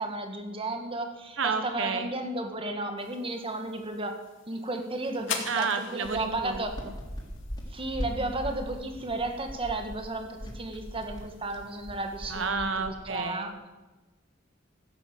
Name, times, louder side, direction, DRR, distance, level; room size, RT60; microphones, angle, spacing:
voice 1, 0.0-4.2 4.5-6.7 7.7-13.5, right 2 dB, 30° right, 5 dB, 1.8 m, -33 dB
voice 2, 1.4-2.1 5.5-6.6 6.8-6.9 12.3-13.7, right 5 dB, 75° right, 8 dB, 1.1 m, -31 dB
sound 1, 3.0-12.5, left 7 dB, 70° left, 2.3 m, -45 dB
sound 2, 6.0-13.2, equal, 20° left, 3.6 m, -40 dB
15.5 x 10.0 x 7.7 m, 1.1 s
head